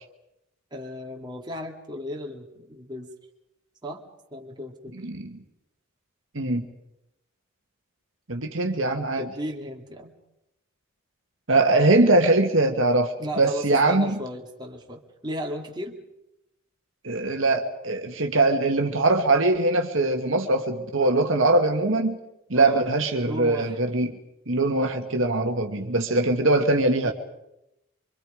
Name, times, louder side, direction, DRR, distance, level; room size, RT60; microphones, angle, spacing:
voice 1, 0.7-3.1 3.8-4.0 4.3-4.9 9.2-10.1 13.2-16.0 22.5-22.9 23.2-23.8 27.0-27.1, equal, 20° right, 1 dB, 2.4 m, -35 dB
voice 2, 4.9-5.4 6.3-6.7 8.3-9.3 11.5-14.2 17.0-22.2 22.5-24.1 24.5-27.1, right 2 dB, 60° right, 4 dB, 1.8 m, -22 dB
25.5 x 25.0 x 5.1 m, 0.87 s
head